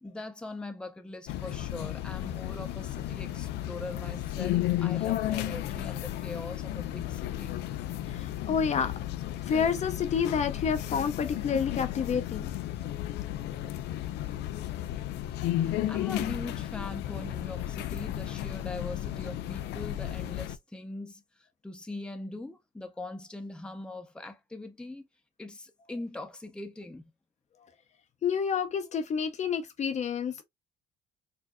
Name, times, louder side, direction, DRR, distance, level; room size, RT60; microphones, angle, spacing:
voice 1, 0.0-7.6 15.6-21.2 21.6-25.1 25.4-27.0, left 2 dB, 5° left, 0.7 m, -41 dB
sound 1, 1.3-20.6, left 13 dB, 80° left, 0.4 m, -33 dB
voice 2, 8.1-8.9 9.5-12.5 28.2-30.4, left 6 dB, 45° left, 0.6 m, -29 dB
4.4 x 2.7 x 2.2 m
cardioid pair, 110°, 17 cm